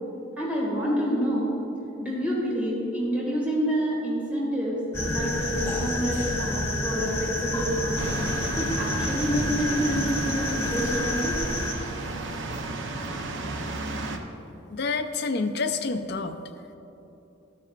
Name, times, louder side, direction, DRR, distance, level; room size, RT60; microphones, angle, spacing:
voice 1, 0.4-1.6 2.0-4.8 5.1-8.2 8.5-11.4, equal, 5° right, -6 dB, 1.8 m, -28 dB
sound 1, 4.9-11.7, left 1 dB, 10° left, 0.9 m, -29 dB
sound 2, 8.0-14.2, right 2 dB, 60° right, 0.7 m, -33 dB
voice 2, 14.7-16.4, left 4 dB, 50° left, 6 dB, 0.5 m, -28 dB
13.5 x 12.0 x 2.4 m, 2.9 s
head